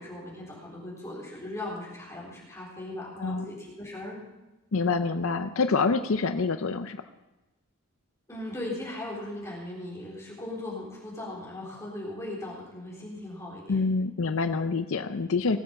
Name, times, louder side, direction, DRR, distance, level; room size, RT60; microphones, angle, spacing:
voice 1, 0.0-4.2 8.3-13.8, left 1 dB, 15° left, -5 dB, 3.9 m, -38 dB
voice 2, 4.7-7.0 13.7-15.6, left 4 dB, 60° left, 9 dB, 0.6 m, -26 dB
19.0 x 7.8 x 7.0 m, 1.0 s
head